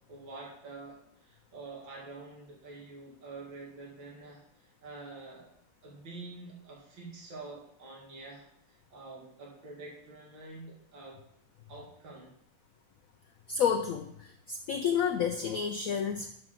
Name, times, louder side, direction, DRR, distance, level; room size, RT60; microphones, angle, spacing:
voice 1, 0.1-5.5 5.8-11.2 11.7-12.3, right 3 dB, 80° right, -2 dB, 2.6 m, -47 dB
voice 2, 13.5-16.3, left 7 dB, 75° left, 5 dB, 0.8 m, -30 dB
6.0 x 6.0 x 6.2 m, 0.78 s
omnidirectional pair, 2.1 m